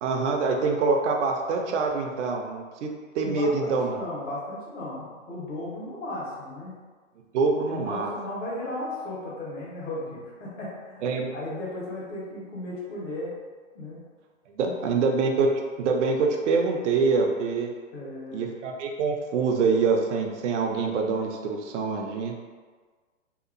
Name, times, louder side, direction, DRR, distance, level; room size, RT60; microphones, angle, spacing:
voice 1, 0.0-2.9 3.1-4.0 7.3-8.1 11.0-11.3 14.5-15.5 15.8-17.7 18.3-22.3, right 4 dB, 65° right, 2 dB, 0.6 m, -25 dB
voice 2, 3.2-6.7 7.7-13.3 13.7-14.0 14.6-14.7 17.9-18.5, left 2 dB, 75° left, -6 dB, 1.2 m, -36 dB
2.8 x 2.4 x 2.5 m, 1.4 s
hypercardioid pair, 130°, 39 cm